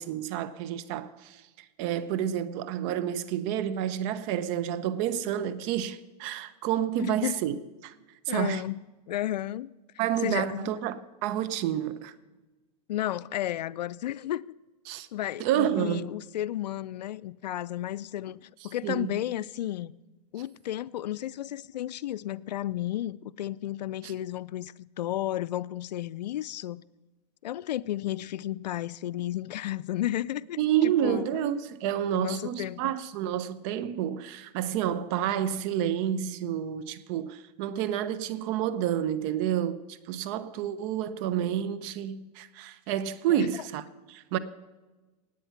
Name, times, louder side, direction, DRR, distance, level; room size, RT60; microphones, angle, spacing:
voice 1, 0.0-1.4 1.8-7.6 7.8-7.9 8.3-8.6 10.0-12.1 14.9-15.1 15.4-16.1 18.8-19.1 30.6-43.8 44.1-44.4, right 10 dB, 45° right, 0.9 m, -29 dB
voice 2, 7.0-7.4 8.3-8.8 9.1-9.7 10.2-10.7 12.9-14.5 15.1-19.9 20.3-26.8 27.4-31.5 32.1-32.9 43.3-43.5, left 13 dB, 85° left, 0.5 m, -33 dB
18.5 x 8.9 x 5.8 m
hypercardioid pair, 130°, 21 cm